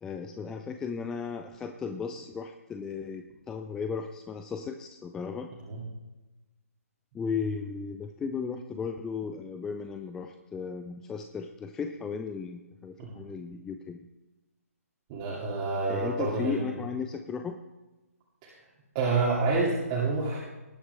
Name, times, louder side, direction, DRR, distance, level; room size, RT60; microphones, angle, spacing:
voice 1, 0.0-5.5 7.1-14.1 15.9-17.6, left 5 dB, 5° left, 6 dB, 0.3 m, -35 dB
voice 2, 15.1-16.7 18.4-18.5 18.9-20.4, right 3 dB, 25° right, -6 dB, 2.4 m, -28 dB
19.5 x 8.5 x 3.4 m, 1.1 s
figure-of-eight pair, 135°, 8 cm